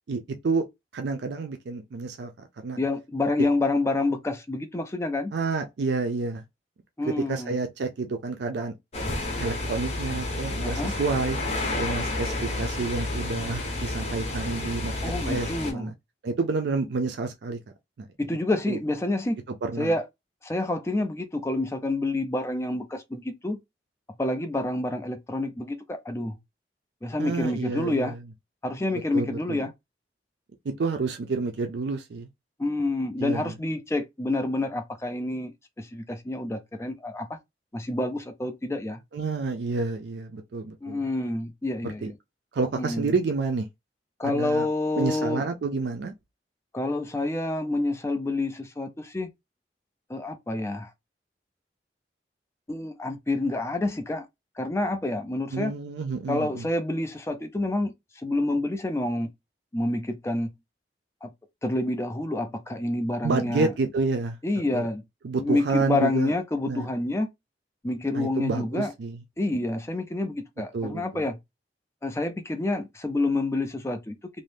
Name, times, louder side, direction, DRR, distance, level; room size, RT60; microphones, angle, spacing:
voice 1, 0.1-0.7 0.9-2.8 5.3-6.4 7.0-8.7 9.4-11.4 11.7-15.9 16.2-17.6 18.0-18.1 18.7-18.8 19.6-19.9 27.2-28.2 28.9-29.7 30.6-32.3 33.2-33.5 39.1-41.1 41.8-42.1 42.5-43.7 44.2-44.7 45.0-46.1 55.5-56.7 63.2-64.4 64.7-64.9 65.2-66.3 66.6-66.9 68.1-69.2 70.7-71.3, right 4 dB, 75° right, 0.4 m, -29 dB
voice 2, 2.8-5.3 7.0-7.6 10.6-10.9 15.0-15.9 18.2-19.4 19.8-20.0 20.4-23.6 24.2-26.4 27.0-28.1 28.6-29.7 32.6-35.5 35.8-37.4 37.7-39.0 40.8-42.1 42.8-43.1 44.2-45.4 46.7-49.3 50.1-50.9 52.7-54.3 54.6-55.7 56.3-57.9 58.2-59.3 59.7-60.5 61.2-61.3 61.6-63.7 64.4-65.0 65.4-67.3 67.8-68.9 69.4-71.4 72.0-74.1, left 2 dB, 15° left, 0.4 m, -28 dB
sound 1, 8.9-15.7, left 2 dB, 35° left, 0.9 m, -30 dB
2.6 x 2.1 x 3.2 m
head